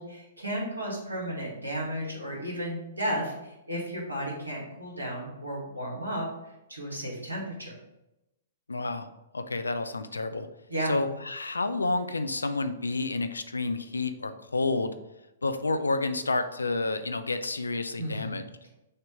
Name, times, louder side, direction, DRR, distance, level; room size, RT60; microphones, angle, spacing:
voice 1, 0.0-6.3 6.7-7.8 10.7-11.0 18.0-18.7, equal, 85° right, -2 dB, 2.0 m, -34 dB
voice 2, 8.7-9.1 9.3-10.5 10.8-14.9 15.4-18.5, left 3 dB, 80° left, 9 dB, 0.5 m, -29 dB
6.5 x 3.0 x 5.0 m, 0.93 s
figure-of-eight pair, 115°, 0 cm